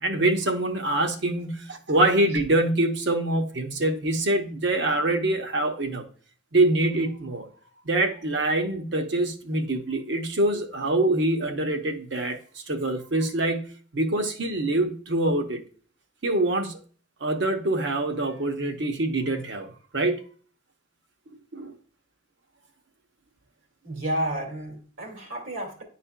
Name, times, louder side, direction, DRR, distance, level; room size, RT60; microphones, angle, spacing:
voice 1, 0.0-6.1 6.5-7.5 7.8-15.6 16.2-16.8 17.2-20.2 21.5-21.7, right 2 dB, 60° right, 0.8 m, -25 dB
voice 2, 23.8-25.8, right 1 dB, 75° right, 2.0 m, -31 dB
10.0 x 4.2 x 2.2 m
head